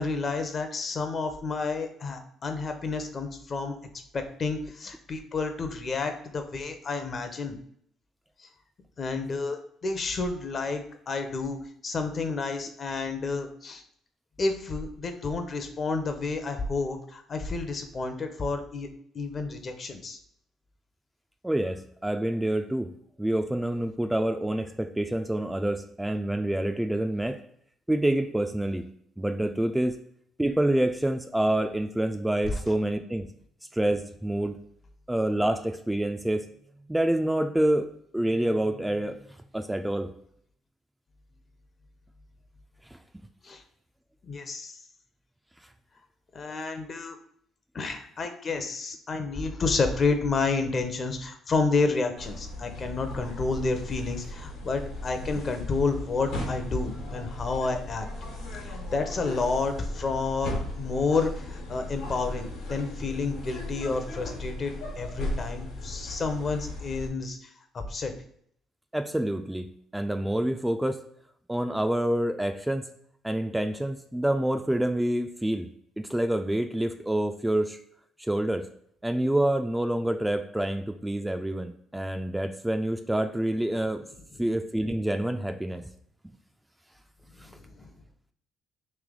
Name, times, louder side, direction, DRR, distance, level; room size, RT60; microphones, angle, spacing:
voice 1, 0.0-3.8 4.1-7.6 8.4-8.5 9.0-13.8 14.4-18.9 19.1-20.2 32.5-32.6 43.4-43.6 44.2-44.8 46.3-47.2 47.7-58.1 58.6-68.1 84.3-84.4 87.4-87.8, left 4 dB, 45° left, 7 dB, 0.6 m, -30 dB
voice 2, 21.4-22.9 23.2-27.4 27.9-28.8 29.2-30.0 30.4-33.3 33.7-34.6 35.1-36.4 36.9-37.9 38.1-39.2 39.5-40.1 42.9-43.0 68.9-69.7 69.9-71.0 71.5-72.9 73.2-75.7 76.0-77.8 78.2-78.7 79.0-84.0 84.4-85.8 87.4-87.5, right 1 dB, 10° right, 6 dB, 0.3 m, -27 dB
sound 1, 52.2-67.1, left 1 dB, 85° left, 1.3 m, -37 dB
3.2 x 3.0 x 3.7 m, 0.67 s
supercardioid pair, 75°, 0 cm